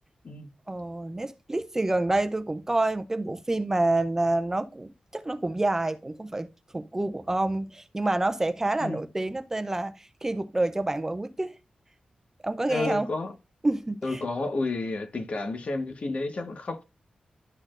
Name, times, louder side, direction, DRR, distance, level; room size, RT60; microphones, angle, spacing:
voice 1, 0.7-11.6 12.4-13.1 13.6-14.2, right 2 dB, 15° right, 0.5 m, -28 dB
voice 2, 12.7-13.3 14.0-16.8, left 3 dB, 50° left, 1.2 m, -31 dB
12.0 x 4.3 x 2.5 m
wide cardioid pair, 125°, 3 cm